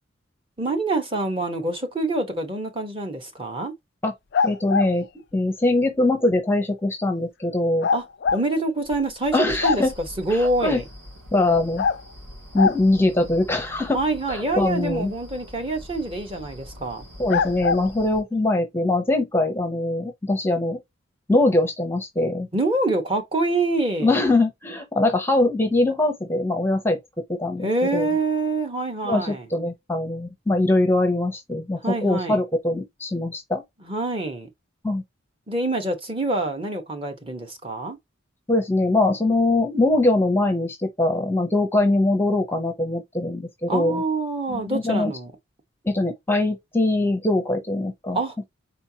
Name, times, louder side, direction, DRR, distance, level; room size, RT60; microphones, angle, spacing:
voice 1, 0.6-3.7 7.9-8.0 8.3-9.4 9.6-9.8 10.2-10.8 13.9-17.1 22.5-24.1 27.6-29.5 31.8-32.4 33.8-34.5 35.5-38.0 43.7-45.3 48.1-48.4, right 2 dB, 25° right, 0.9 m, -26 dB
sound 1, 4.3-4.9 7.8-8.4 8.9-9.0 9.3-10.1 11.8-12.0 12.6-12.8 16.2-16.3 17.3-17.8, left 5 dB, 50° left, 0.3 m, -23 dB
voice 2, 4.4-5.0 5.3-7.9 9.3-9.9 10.3-10.8 11.3-11.8 12.5-14.0 14.3-15.1 17.2-20.8 21.3-22.5 24.0-27.0 27.3-28.1 29.0-33.6 34.8-35.0 38.5-44.0 44.5-45.1 45.8-48.2, left 2 dB, 10° left, 0.7 m, -22 dB
sound 2, 9.4-18.2, equal, 70° right, 3.2 m, -43 dB
4.4 x 4.0 x 2.7 m
head